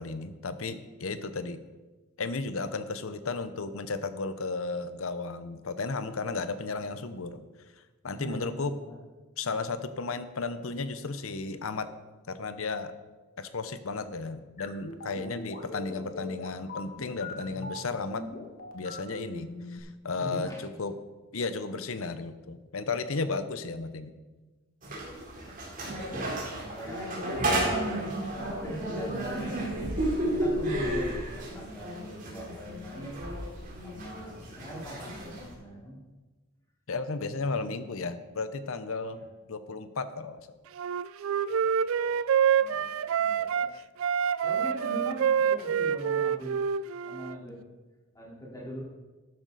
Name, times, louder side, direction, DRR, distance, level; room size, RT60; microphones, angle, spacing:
voice 1, 0.0-1.6 2.2-7.5 8.0-8.7 9.4-11.9 12.3-12.9 13.4-18.3 18.7-21.0 21.3-24.1 36.9-40.5, left 3 dB, 70° left, 12 dB, 0.8 m, -34 dB
voice 2, 8.1-9.0 20.2-20.6 25.4-27.2 28.3-33.2 33.8-36.0 39.1-39.3 41.4-42.2 42.6-43.7 44.4-46.6 47.0-47.6 48.1-48.8, right 1 dB, 15° left, -5 dB, 3.7 m, -42 dB
sound 1, 14.6-19.8, left 2 dB, 40° left, 1.8 m, -41 dB
sound 2, 24.8-35.5, right 1 dB, 40° right, 3.7 m, -32 dB
Wind instrument woodwind instrument, 40.8-43.7 44.0-47.4, right 7 dB, 65° right, 0.3 m, -27 dB
12.5 x 10.5 x 4.0 m, 1.2 s
head